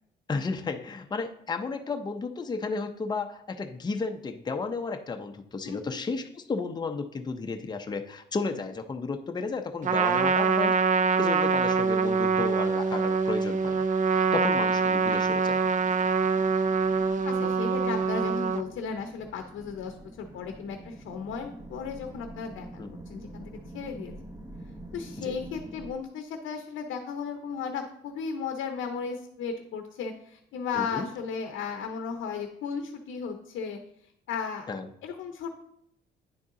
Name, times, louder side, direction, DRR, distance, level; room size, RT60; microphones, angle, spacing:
voice 1, 0.3-10.7 11.2-15.6 22.8-22.9 25.2-25.3 30.7-31.1 34.7-34.9, left 4 dB, 20° left, 6 dB, 0.6 m, -33 dB
voice 2, 5.7-6.0 17.2-22.8 23.1-24.1 24.9-33.8 34.3-34.7 35.0-35.5, left 6 dB, 80° left, 5 dB, 0.7 m, -35 dB
Trumpet, 9.8-18.6, right 5 dB, 40° right, 0.4 m, -25 dB
sound 1, 12.1-25.9, right 1 dB, 20° right, 1.0 m, -48 dB
9.6 x 3.8 x 3.7 m, 0.74 s
cardioid pair, 90°, 20 cm